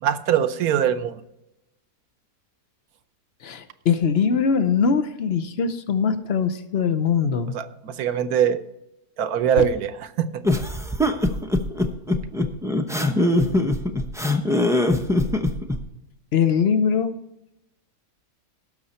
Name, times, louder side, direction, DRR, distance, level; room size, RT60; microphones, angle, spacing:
voice 1, 0.0-1.2 7.5-8.6 9.2-10.4, right 9 dB, 70° right, 11 dB, 1.2 m, -22 dB
voice 2, 3.4-7.5 9.6-9.7 16.3-17.1, left 6 dB, 50° left, 11 dB, 0.8 m, -22 dB
sound 1, 10.4-15.8, left 1 dB, 5° right, 0.5 m, -21 dB
17.0 x 6.6 x 4.2 m, 0.88 s
omnidirectional pair, 1.7 m